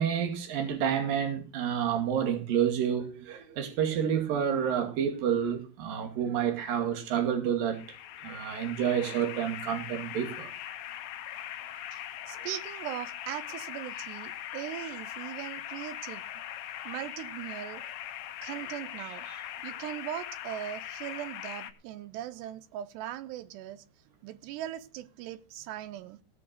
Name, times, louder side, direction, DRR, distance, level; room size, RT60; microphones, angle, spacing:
voice 1, 0.0-7.8 8.2-10.5, right 8 dB, 60° right, 3.8 m, -29 dB
sound 1, 7.7-21.7, left 11 dB, 70° left, 2.4 m, -41 dB
voice 2, 12.3-16.2 16.9-17.8 18.4-23.8 24.2-26.2, right 12 dB, 90° right, 3.1 m, -39 dB
17.5 x 6.2 x 6.5 m
omnidirectional pair, 4.8 m